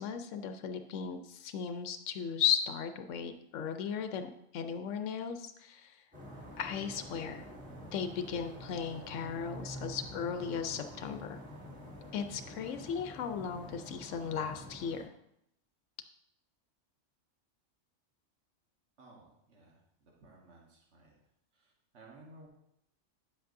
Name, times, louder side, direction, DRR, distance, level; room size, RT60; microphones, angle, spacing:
voice 1, 0.0-5.9 6.6-7.5 7.9-11.4 12.1-15.0, left 7 dB, 90° left, 8 dB, 0.9 m, -36 dB
sound 1, 6.1-15.0, equal, 10° right, 2.7 m, -47 dB
voice 2, 19.0-19.7 20.0-21.1 21.9-22.5, right 2 dB, 65° right, -2 dB, 1.6 m, -56 dB
9.9 x 7.8 x 2.6 m, 0.79 s
omnidirectional pair, 1.2 m